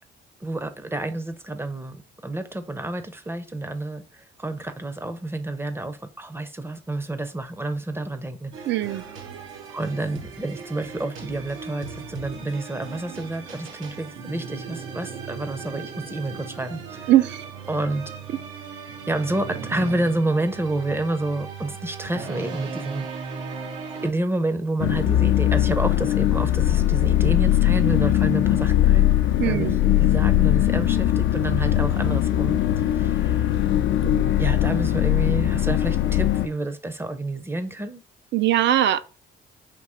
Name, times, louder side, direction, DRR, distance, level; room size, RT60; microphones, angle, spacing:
voice 1, 0.4-9.2 9.7-17.1 17.7-18.1 19.1-23.4 24.0-33.5 34.4-38.0, right 2 dB, 10° right, 0.5 m, -29 dB
sound 1, 8.5-24.1, right 5 dB, 90° right, 0.8 m, -37 dB
voice 2, 8.6-9.0 17.1-17.4 29.4-29.8 34.0-34.3 38.3-39.0, right 13 dB, 65° right, 0.4 m, -21 dB
sound 2, 24.8-36.5, left 12 dB, 70° left, 0.4 m, -20 dB
3.6 x 2.9 x 4.1 m
cardioid pair, 90°, 20 cm